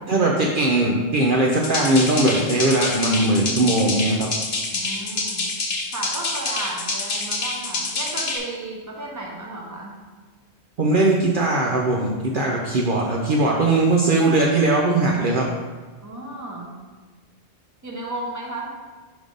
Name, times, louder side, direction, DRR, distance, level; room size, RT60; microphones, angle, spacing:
voice 1, 0.1-4.3 10.8-15.5, right 2 dB, 55° right, -2 dB, 0.7 m, -20 dB
sound 1, 1.5-8.4, left 3 dB, 55° left, 1.0 m, -27 dB
voice 2, 4.7-5.5 5.9-10.0 16.0-16.8 17.8-18.7, right 2 dB, 20° right, -1 dB, 0.9 m, -34 dB
5.2 x 5.1 x 3.8 m, 1.4 s
omnidirectional pair, 1.1 m